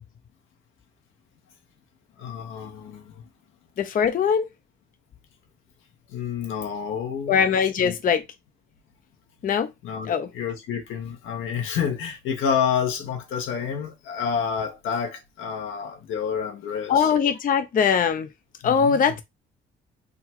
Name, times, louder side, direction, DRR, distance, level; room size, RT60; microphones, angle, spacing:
voice 1, 2.2-3.2 6.1-7.4 7.8-8.0 9.8-17.1 18.6-19.1, left 7 dB, 85° left, 1.1 m, -29 dB
voice 2, 3.8-4.5 7.3-8.2 9.4-9.7 10.0-10.3 16.9-18.3 18.6-19.2, left 7 dB, 45° left, 0.6 m, -21 dB
3.7 x 2.3 x 4.4 m
cardioid pair, 90°, 20 cm